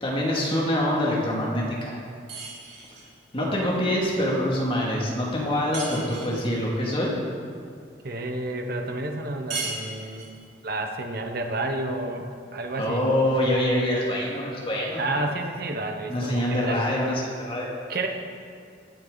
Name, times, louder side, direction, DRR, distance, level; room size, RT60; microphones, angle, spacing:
voice 1, 0.0-2.0 3.3-7.1 12.8-15.0 16.1-17.7, left 1 dB, 30° left, -4 dB, 2.3 m, -25 dB
sound 1, 2.3-3.1 5.7-6.5 9.5-10.4, right 3 dB, 70° right, 3.5 m, -35 dB
voice 2, 8.0-10.3 10.6-13.0 15.0-16.8 17.9-18.1, right 2 dB, 55° right, 3 dB, 1.2 m, -30 dB
17.5 x 8.9 x 4.0 m, 2.3 s
head